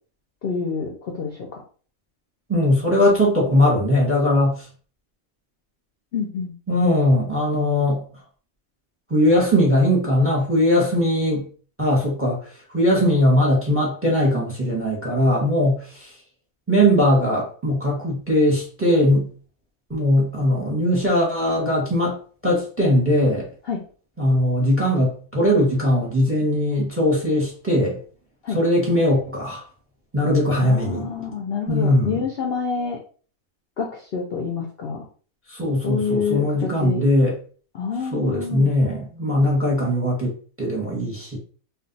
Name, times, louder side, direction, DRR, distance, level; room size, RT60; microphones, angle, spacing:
voice 1, 0.4-1.6 6.1-6.5 23.7-23.8 28.4-28.6 30.6-33.0 33.8-35.0 35.8-37.1 37.7-38.7, left 5 dB, 60° left, 0 dB, 0.6 m, -27 dB
voice 2, 2.5-4.7 6.7-8.0 9.1-11.5 11.8-16.1 16.7-19.3 19.9-22.2 22.4-23.5 24.2-28.0 28.5-29.6 30.1-31.1 31.7-32.2 35.5-37.4 38.1-41.4, left 1 dB, 10° right, -2 dB, 0.8 m, -20 dB
2.5 x 2.3 x 3.8 m, 0.41 s
omnidirectional pair, 1.5 m